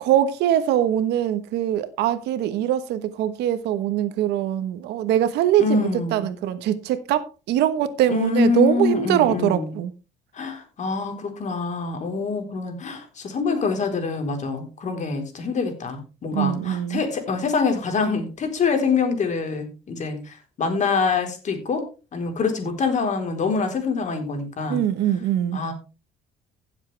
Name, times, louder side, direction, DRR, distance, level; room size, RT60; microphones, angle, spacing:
voice 1, 0.0-9.9 16.3-17.0 24.7-25.6, right 11 dB, 80° right, 1.2 m, -22 dB
voice 2, 5.6-6.3 8.1-9.7 10.3-21.9 22.1-24.8 25.5-25.7, left 4 dB, 45° left, 3.8 m, -25 dB
16.0 x 7.5 x 3.3 m
cardioid pair, 110°, 17 cm